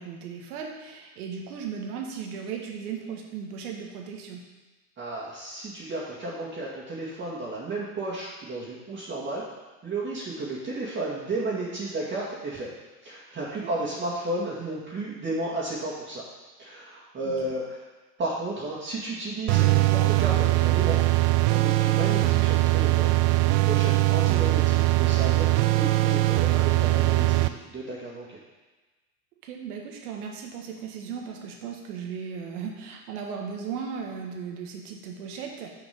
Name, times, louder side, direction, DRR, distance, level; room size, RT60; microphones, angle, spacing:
voice 1, 0.0-4.4 13.6-13.9 17.2-17.6 29.4-35.7, right 6 dB, 75° right, 1 dB, 1.8 m, -36 dB
voice 2, 5.0-9.4 9.8-12.7 13.0-16.2 16.6-17.8 18.2-21.0 21.5-23.1 23.5-28.4, right 2 dB, 25° right, -7 dB, 2.1 m, -33 dB
sound 1, 19.5-27.5, right 19 dB, 50° right, 0.5 m, -21 dB
7.0 x 5.0 x 7.0 m, 1.2 s
supercardioid pair, 120°, 45 cm